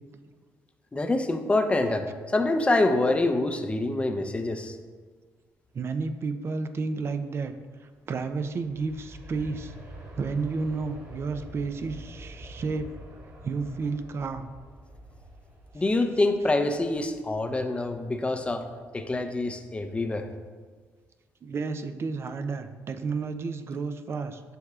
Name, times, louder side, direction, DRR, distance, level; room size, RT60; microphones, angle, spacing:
voice 1, 0.9-4.8 15.7-18.7 18.9-20.3, left 2 dB, 20° left, 6 dB, 0.6 m, -26 dB
voice 2, 5.7-7.5 8.1-9.7 10.1-12.9 13.4-14.5 21.4-24.6, right 4 dB, 45° right, 9 dB, 0.5 m, -31 dB
Aircraft, 8.0-18.7 19.1-19.2, right 1 dB, 60° right, 1.6 m, -47 dB
7.8 x 5.4 x 2.4 m, 1.5 s
cardioid pair, 75°, 6 cm